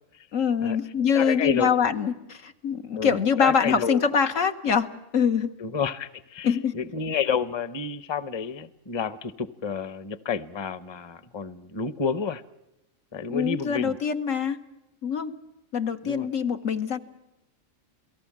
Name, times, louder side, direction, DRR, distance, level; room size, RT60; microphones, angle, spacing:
voice 1, 0.3-4.9 5.1-5.5 6.4-6.8 13.3-14.6 15.0-15.3 15.7-17.0, left 7 dB, 85° left, 7 dB, 1.6 m, -24 dB
voice 2, 1.1-1.8 3.0-4.0 5.6-12.4 13.1-14.0 16.0-16.3, left 6 dB, 25° left, 17 dB, 0.7 m, -30 dB
28.5 x 18.0 x 7.4 m, 0.92 s
omnidirectional pair, 1.3 m